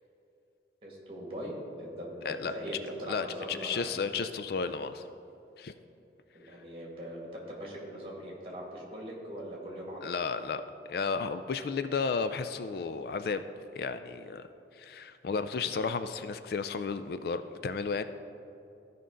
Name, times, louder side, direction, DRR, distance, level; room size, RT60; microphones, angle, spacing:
voice 1, 0.8-4.0 6.3-10.2, equal, 30° right, -3 dB, 2.0 m, -41 dB
voice 2, 3.1-5.0 5.6-5.7 10.0-13.4 13.8-14.5 14.8-18.0, left 5 dB, 55° left, 11 dB, 0.3 m, -33 dB
14.5 x 5.3 x 3.8 m, 2.7 s
head